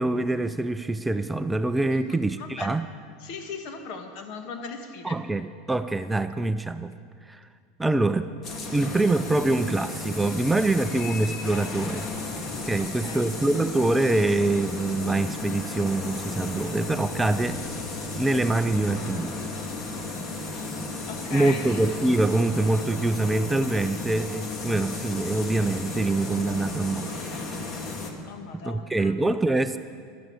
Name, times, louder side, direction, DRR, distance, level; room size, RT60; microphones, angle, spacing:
voice 1, 0.0-2.8 5.0-6.9 7.3-7.4 7.8-8.3 8.7-12.1 12.6-17.6 18.1-19.4 21.3-27.2 28.5-29.8, right 2 dB, 10° right, 11 dB, 0.4 m, -25 dB
voice 2, 1.9-2.8 3.2-5.2 12.8-13.3 21.1-21.8 28.3-29.1, left 5 dB, 60° left, 5 dB, 1.7 m, -38 dB
sound 1, 8.4-28.1, left 3 dB, 35° left, 1.8 m, -34 dB
12.5 x 9.2 x 8.7 m, 2.1 s
supercardioid pair, 115°, 0 cm